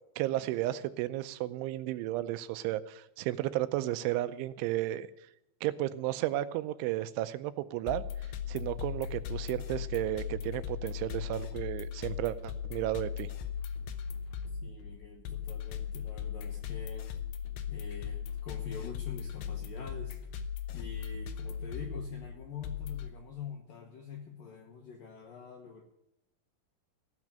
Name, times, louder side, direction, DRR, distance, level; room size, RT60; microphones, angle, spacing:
voice 1, 0.2-5.1 5.6-8.0 8.5-13.3, right 15 dB, 85° right, 14 dB, 3.0 m, -33 dB
sound 1, 7.9-23.1, left 8 dB, 85° left, 2.1 m, -38 dB
voice 2, 14.6-17.1 17.7-20.2 20.7-25.8, left 6 dB, 70° left, 2 dB, 2.1 m, -45 dB
16.0 x 6.1 x 8.8 m, 0.87 s
omnidirectional pair, 5.6 m